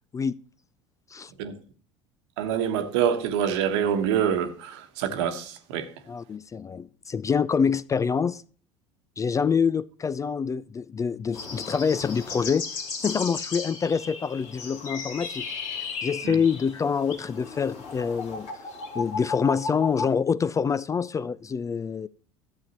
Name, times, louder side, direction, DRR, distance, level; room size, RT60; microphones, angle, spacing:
voice 1, 2.4-5.9 16.2-16.4, right 8 dB, 70° right, 1.2 m, -26 dB
voice 2, 6.1-8.4 9.2-15.5 16.0-18.5 18.9-22.1, left 6 dB, 20° left, 0.3 m, -26 dB
sound 1, 11.3-20.1, left 5 dB, 60° left, 2.3 m, -35 dB
13.0 x 8.0 x 2.9 m
hypercardioid pair, 70°, 15 cm